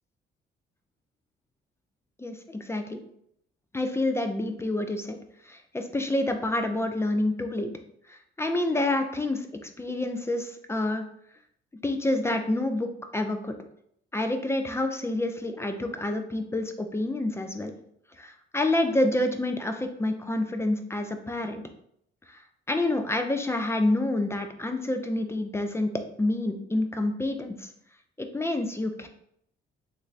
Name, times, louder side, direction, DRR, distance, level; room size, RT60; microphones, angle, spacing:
voice 1, 2.2-3.0 3.7-5.2 5.4-7.7 8.1-11.0 11.8-13.5 14.1-17.7 18.2-21.6 22.3-22.4 22.7-25.9 26.2-27.7 28.2-29.1, left 2 dB, 15° left, 6 dB, 0.4 m, -28 dB
3.4 x 2.6 x 3.2 m, 0.71 s
cardioid pair, 90°, 20 cm